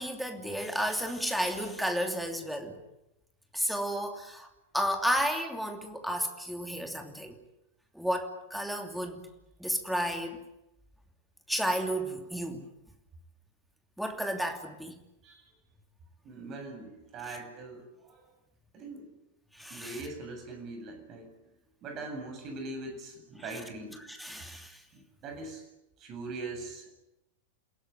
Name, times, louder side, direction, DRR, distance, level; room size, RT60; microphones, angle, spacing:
voice 1, 0.0-2.8 3.5-4.5 4.7-7.3 7.9-9.2 9.6-10.4 11.5-12.7 14.0-15.0 17.3-17.4 19.5-20.0 24.1-24.8, equal, ahead, 2.9 m, -32 dB
voice 2, 16.2-18.2 18.7-19.1 19.7-21.5 21.8-24.0 24.9-25.6 26.0-27.0, right 2 dB, 35° right, 7.8 m, -42 dB
28.0 x 17.0 x 9.3 m
figure-of-eight pair, 90°, 0 cm